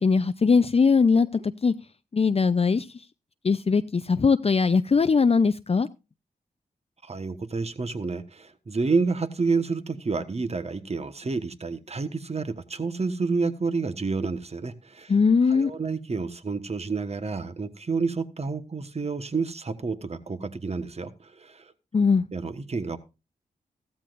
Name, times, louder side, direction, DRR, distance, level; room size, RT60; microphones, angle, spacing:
voice 1, 0.0-1.7 2.1-2.9 3.4-5.9 15.1-15.7 21.9-22.2, left 5 dB, 40° left, 0.6 m, -20 dB
voice 2, 7.0-15.1 15.5-21.7 22.3-23.0, right 4 dB, 45° right, 1.3 m, -29 dB
15.0 x 13.0 x 2.6 m
cardioid pair, 45°, 16 cm